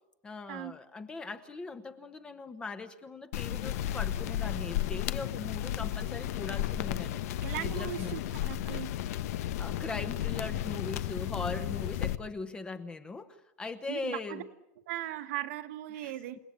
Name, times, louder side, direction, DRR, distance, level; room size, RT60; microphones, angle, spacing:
voice 1, 0.2-7.2 7.6-8.2 9.6-14.4 15.9-16.1, left 3 dB, 10° left, 10 dB, 1.0 m, -40 dB
sound 1, 3.3-12.2, left 12 dB, 65° left, 1.0 m, -33 dB
voice 2, 7.4-8.9 13.9-14.4 14.9-16.4, right 13 dB, 65° right, 7 dB, 1.7 m, -38 dB
29.0 x 18.5 x 8.6 m, 0.85 s
supercardioid pair, 175°, 9 cm